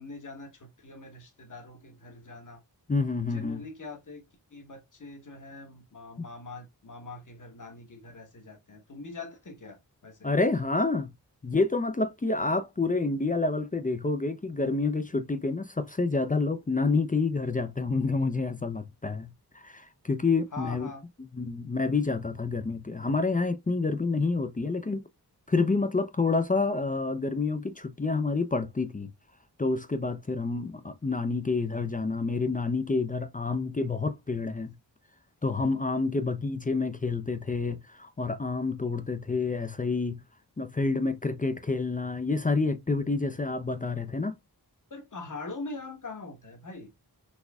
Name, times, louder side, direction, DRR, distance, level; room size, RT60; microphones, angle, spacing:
voice 1, 0.0-2.6 3.2-4.2 4.5-10.3 20.5-21.1 44.9-46.9, left 3 dB, 45° left, 1.1 m, -43 dB
voice 2, 2.9-3.6 10.2-11.1 11.4-20.9 21.4-25.0 25.5-29.1 29.6-34.7 35.4-40.2 40.6-44.3, left 3 dB, 20° left, 0.4 m, -28 dB
4.0 x 2.5 x 2.3 m
wide cardioid pair, 55°, 42 cm